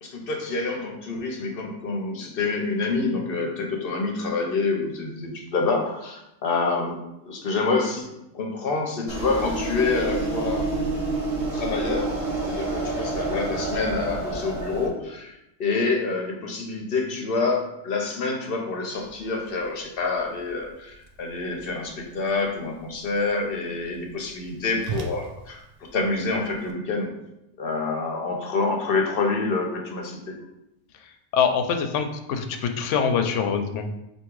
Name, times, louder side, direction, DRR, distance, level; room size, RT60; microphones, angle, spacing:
voice 1, 0.0-10.7 11.5-27.1 27.6-30.4, left 3 dB, 55° left, 1 dB, 0.9 m, -27 dB
sound 1, 9.1-14.9, right 2 dB, 55° right, 1.1 m, -28 dB
Whoosh swoosh swish, 18.9-26.7, right 5 dB, 70° right, 0.3 m, -42 dB
voice 2, 31.3-33.9, left 6 dB, 85° left, 6 dB, 0.9 m, -24 dB
3.5 x 2.8 x 4.6 m, 0.86 s
omnidirectional pair, 1.2 m